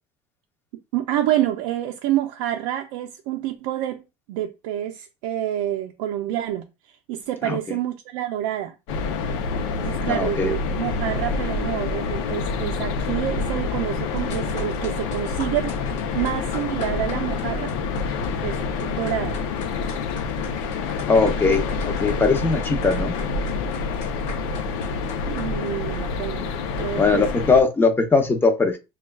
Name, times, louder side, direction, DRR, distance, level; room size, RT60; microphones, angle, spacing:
voice 1, 0.9-4.0 4.3-8.7 9.8-15.8 16.1-17.7 18.4-19.4 25.3-26.5 26.8-27.2, right 12 dB, 85° right, 0.4 m, -28 dB
voice 2, 7.4-7.8 10.1-10.5 21.1-23.1 27.0-28.8, left 4 dB, 15° left, 0.7 m, -20 dB
sound 1, 8.9-27.6, left 4 dB, 90° left, 0.6 m, -27 dB
sound 2, 14.2-27.1, left 5 dB, 55° left, 0.9 m, -43 dB
6.1 x 2.3 x 2.3 m
cardioid pair, 120°, 14 cm